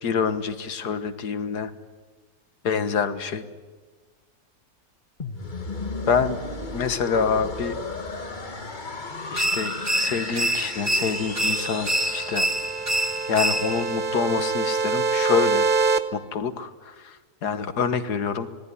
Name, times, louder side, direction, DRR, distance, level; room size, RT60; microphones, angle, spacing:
voice 1, 0.0-1.7 2.6-3.5 6.1-6.4 6.7-7.8 9.3-12.5 13.3-15.7 16.1-18.5, left 6 dB, 85° left, 10 dB, 2.0 m, -26 dB
sound 1, 5.2-13.1, left 3 dB, 30° left, 1.7 m, -35 dB
sound 2, 9.4-14.0, right 1 dB, 15° right, 0.6 m, -26 dB
sound 3, 11.1-16.0, right 4 dB, 35° right, 1.1 m, -26 dB
26.5 x 19.0 x 9.9 m, 1.4 s
omnidirectional pair, 1.7 m